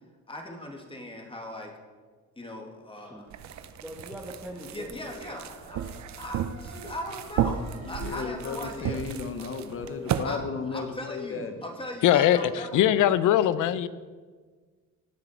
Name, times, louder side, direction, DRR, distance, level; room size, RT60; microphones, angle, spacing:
voice 1, 0.3-1.7 2.4-3.3 4.7-5.8 6.2-9.0 9.4-9.5 10.2-12.8, left 1 dB, 15° left, 2 dB, 2.2 m, -39 dB
sound 1, 3.3-10.2, right 9 dB, 65° right, 0.7 m, -34 dB
sound 2, 3.3-8.9, right 4 dB, 85° right, 2.2 m, -50 dB
voice 2, 3.8-5.2, right 1 dB, 5° right, -2 dB, 1.5 m, -42 dB
voice 3, 7.9-11.6, left 5 dB, 45° left, 7 dB, 1.0 m, -34 dB
voice 4, 12.0-13.9, left 11 dB, 85° left, 15 dB, 0.6 m, -21 dB
18.0 x 6.3 x 4.4 m, 1.5 s
cardioid pair, 90°, 30 cm